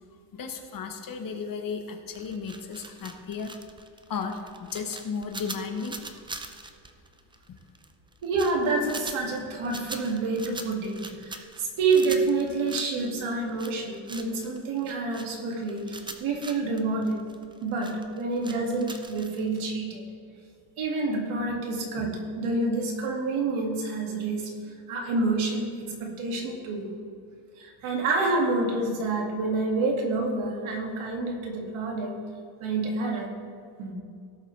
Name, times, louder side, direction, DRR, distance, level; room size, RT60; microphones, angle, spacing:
voice 1, 0.3-3.5 4.1-6.2, left 5 dB, 45° left, 5 dB, 1.1 m, -34 dB
sound 1, 2.1-19.7, right 3 dB, 10° right, 0.4 m, -42 dB
voice 2, 8.2-17.2 17.6-20.0 20.8-24.5 24.9-26.9 27.6-32.2 32.6-33.3 33.8-33.9, right 3 dB, 75° right, 1 dB, 2.2 m, -28 dB
17.5 x 7.4 x 3.3 m, 2.3 s
cardioid pair, 150°, 49 cm